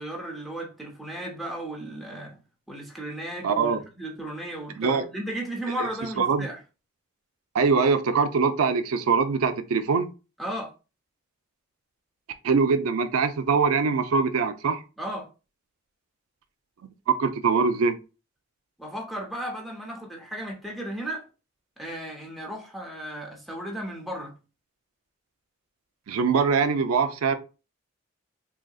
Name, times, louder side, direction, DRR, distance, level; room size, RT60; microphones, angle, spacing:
voice 1, 0.0-2.4 2.7-6.6 10.4-10.7 15.0-15.3 18.8-21.3 21.8-24.3, right 1 dB, ahead, 0.7 m, -35 dB
voice 2, 3.4-3.8 4.8-5.0 5.8-5.9 6.2-6.5 7.5-10.1 12.4-14.8 17.1-18.0 26.1-27.4, right 5 dB, 85° right, 0.4 m, -23 dB
3.8 x 2.8 x 2.3 m
head